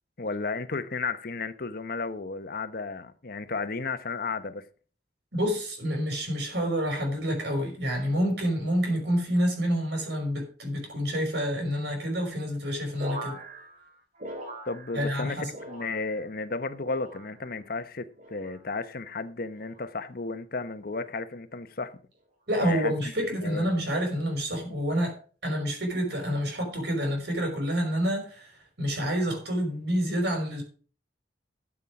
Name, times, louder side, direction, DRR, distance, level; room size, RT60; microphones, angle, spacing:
voice 1, 0.2-4.6 14.7-22.0 22.6-23.8, left 3 dB, 60° left, 1.0 m, -34 dB
voice 2, 5.3-13.4 14.9-15.5 22.5-25.1 25.4-28.5 28.8-30.6, equal, 70° right, 5.4 m, -28 dB
sound 1, 13.0-15.2 15.5-16.4 16.8-17.5 18.2-18.6 19.5-19.9 20.8-21.1, right 1 dB, 50° right, 3.1 m, -42 dB
13.5 x 7.3 x 4.9 m
head